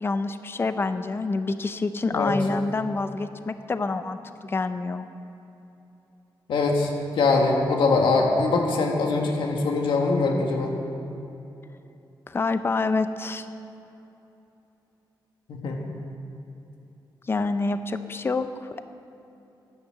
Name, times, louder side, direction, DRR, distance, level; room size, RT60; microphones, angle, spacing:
voice 1, 0.0-5.0 12.3-13.5 17.3-18.8, left 3 dB, 30° left, 10 dB, 0.6 m, -27 dB
voice 2, 6.5-10.8 15.5-15.8, left 3 dB, 90° left, 1 dB, 1.6 m, -23 dB
11.0 x 9.6 x 7.4 m, 2.9 s
wide cardioid pair, 140°, 8 cm